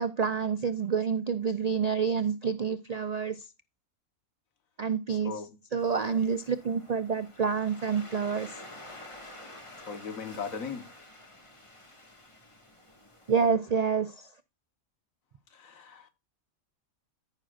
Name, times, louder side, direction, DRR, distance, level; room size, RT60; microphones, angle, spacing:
voice 1, 0.0-3.4 4.8-5.3 5.7-8.5 13.3-14.1, right 6 dB, 80° right, 0.3 m, -28 dB
voice 2, 5.1-5.5 9.8-10.9 15.5-16.1, left 6 dB, 75° left, 1.7 m, -38 dB
Waves surf, 5.8-13.5, left 1 dB, 20° left, 1.8 m, -49 dB
14.0 x 6.1 x 2.5 m
omnidirectional pair, 1.4 m